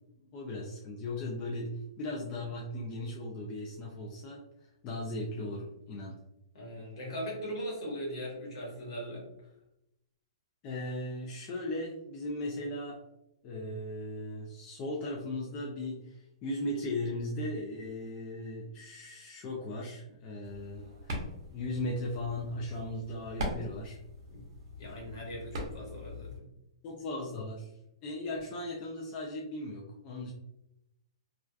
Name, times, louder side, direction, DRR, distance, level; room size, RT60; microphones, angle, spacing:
voice 1, 0.3-4.4 4.8-6.2 10.6-13.0 13.4-21.2 21.5-24.0 26.8-27.7 28.0-30.3, left 1 dB, 25° left, -2 dB, 0.4 m, -37 dB
voice 2, 6.5-9.3 24.3-24.5 24.8-26.5, equal, 65° left, -3 dB, 1.2 m, -39 dB
sound 1, 20.4-26.4, left 1 dB, 50° right, 0.7 m, -41 dB
2.4 x 2.3 x 2.3 m, 0.86 s
hypercardioid pair, 155°, 3 cm